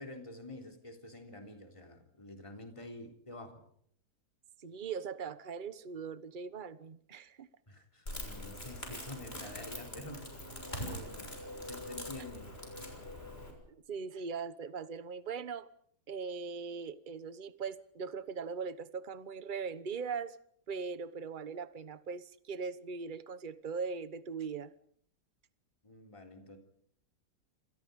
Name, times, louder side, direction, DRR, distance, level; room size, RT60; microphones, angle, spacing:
voice 1, 0.0-3.6 7.7-10.2 10.8-11.3 11.6-12.5 25.8-26.6, left 1 dB, 20° left, 3.7 m, -48 dB
voice 2, 4.6-7.5 10.7-10.8 13.7-15.7 16.1-20.4 20.7-24.7, right 5 dB, 35° right, 1.2 m, -40 dB
Crackle, 8.1-13.5, left 1 dB, 35° left, 6.9 m, -43 dB
28.5 x 26.5 x 5.3 m
omnidirectional pair, 1.8 m